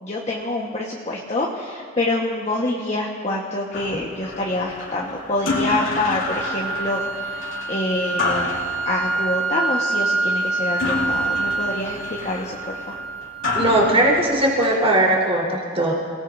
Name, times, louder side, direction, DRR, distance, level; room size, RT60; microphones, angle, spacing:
voice 1, 0.0-8.5 8.8-13.0, left 2 dB, 35° left, -3 dB, 1.3 m, -26 dB
carousel playground piezo, 3.7-15.1, left 2 dB, 90° left, 2.5 m, -30 dB
sound 1, 6.3-14.3, right 3 dB, 85° right, 1.4 m, -27 dB
voice 2, 13.5-15.9, right 1 dB, 30° right, -3 dB, 3.9 m, -19 dB
28.5 x 18.5 x 2.7 m, 2.1 s
head